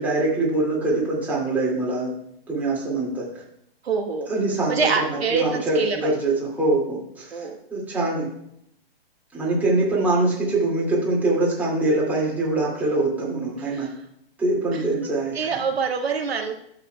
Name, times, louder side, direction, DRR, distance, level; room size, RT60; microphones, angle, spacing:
voice 1, 0.0-2.1 2.5-3.4 4.3-8.3 9.3-13.9 14.4-15.5, right 2 dB, 5° right, -6 dB, 2.1 m, -24 dB
voice 2, 3.8-4.3 4.7-6.1 7.3-7.6 13.7-13.9 14.7-14.8 15.3-16.5, right 5 dB, 85° right, 2 dB, 1.4 m, -25 dB
12.5 x 7.1 x 2.2 m, 0.72 s
hypercardioid pair, 145°, 30 cm